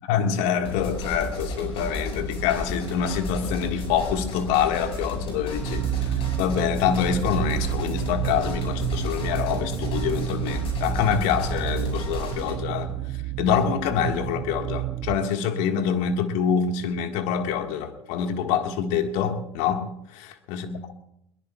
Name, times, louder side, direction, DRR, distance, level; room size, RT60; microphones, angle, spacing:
voice 1, 0.1-13.0 13.4-20.2 20.5-20.9, left 8 dB, 60° left, 1.8 m, -26 dB
sound 1, 0.7-12.5, left 1 dB, 40° left, 6.3 m, -33 dB
sound 2, 5.6-15.2, right 15 dB, 40° right, 0.6 m, -30 dB
22.0 x 21.5 x 2.4 m
figure-of-eight pair, 70°, 14 cm